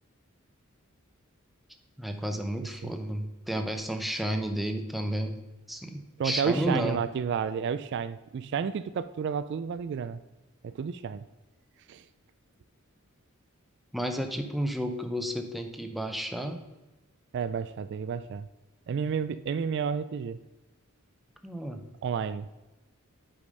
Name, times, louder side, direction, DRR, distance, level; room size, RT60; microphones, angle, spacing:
voice 1, 2.0-5.4 5.7-7.0 13.9-16.6 21.4-21.8, right 1 dB, ahead, 5 dB, 0.7 m, -32 dB
voice 2, 6.2-10.2 10.6-11.2 11.9-12.0 17.3-18.5 18.9-20.4 22.0-22.5, right 6 dB, 55° right, 13 dB, 0.3 m, -31 dB
8.5 x 4.9 x 5.3 m, 1.1 s
head